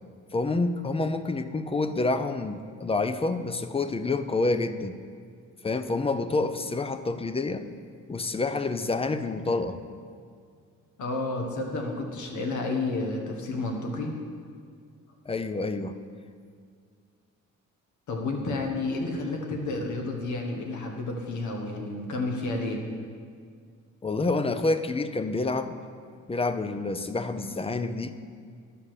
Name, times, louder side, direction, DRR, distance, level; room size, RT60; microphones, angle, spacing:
voice 1, 0.3-5.0 5.6-7.7 8.1-9.8 15.3-16.0 24.0-25.7 26.3-28.1, left 3 dB, 20° left, 10 dB, 0.5 m, -28 dB
voice 2, 11.0-14.1 18.1-22.8, left 2 dB, 75° left, 2 dB, 1.6 m, -31 dB
11.0 x 5.7 x 6.6 m, 2.1 s
cardioid pair, 90°, 30 cm